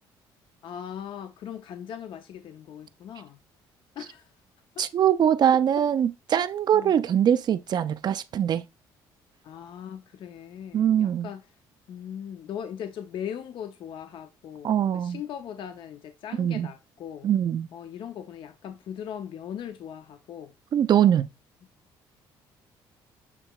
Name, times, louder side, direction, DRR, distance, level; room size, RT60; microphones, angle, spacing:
voice 1, 0.6-3.4 4.0-4.3 4.8-4.9 6.7-6.9 9.4-11.4 11.9-17.3 17.7-20.5, left 9 dB, 60° left, 0.5 m, -39 dB
voice 2, 4.8-8.6 10.7-11.3 14.6-15.2 16.4-16.7 17.2-17.7 20.7-21.3, right 9 dB, 50° right, 0.4 m, -22 dB
7.3 x 2.9 x 2.2 m
cardioid pair, 85°, 9 cm